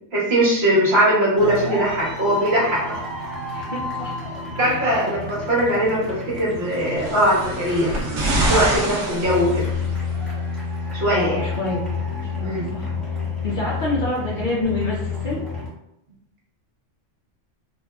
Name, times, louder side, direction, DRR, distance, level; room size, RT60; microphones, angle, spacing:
voice 1, 0.1-3.0 4.6-8.0 8.2-9.7 10.9-11.4 12.4-12.7, right 1 dB, 60° right, -6 dB, 1.4 m, -20 dB
sound 1, 1.4-15.7, left 4 dB, ahead, 0.8 m, -30 dB
voice 2, 3.5-4.2 4.5-4.9 11.1-11.8 12.3-12.9 13.4-15.4, left 2 dB, 50° left, -5 dB, 0.6 m, -27 dB
sound 2, 6.7-10.1 11.0-11.1, right 1 dB, 80° right, 1.1 m, -25 dB
3.9 x 2.5 x 2.2 m, 0.84 s
omnidirectional pair, 1.3 m